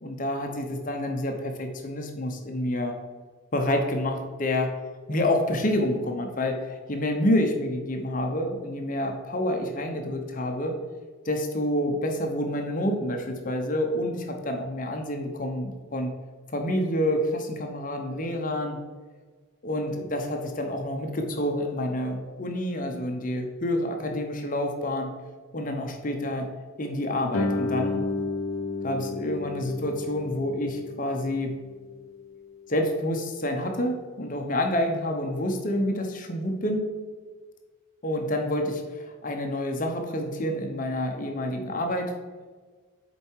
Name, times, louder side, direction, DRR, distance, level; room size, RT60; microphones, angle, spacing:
voice 1, 0.0-2.9 3.5-4.7 5.1-10.7 11.2-16.1 16.5-18.8 19.6-25.1 25.5-26.5 26.8-28.0 28.8-31.5 32.7-36.9 38.0-42.1, left 1 dB, 40° left, 4 dB, 0.7 m, -28 dB
Guitar, 27.3-32.7, left 3 dB, 70° left, 0.6 m, -32 dB
6.9 x 4.6 x 4.5 m, 1.5 s
head